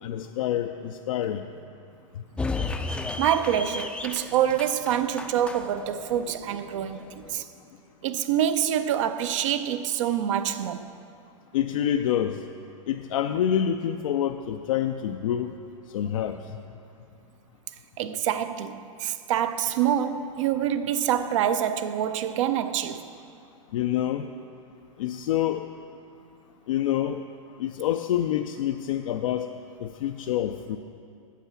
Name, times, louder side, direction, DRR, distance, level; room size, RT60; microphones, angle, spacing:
voice 1, 0.0-1.5 11.5-12.4 12.9-15.5 15.9-16.6 23.7-24.3 25.0-25.6 26.7-27.2 27.6-29.5 29.8-30.8, left 10 dB, 75° left, 0.4 m, -27 dB
sound 1, 2.4-7.4, left 3 dB, 5° left, 0.4 m, -34 dB
voice 2, 3.2-7.5 8.0-10.9 18.0-23.1, right 10 dB, 65° right, 0.5 m, -26 dB
8.3 x 7.3 x 5.7 m
hypercardioid pair, 110°, 17 cm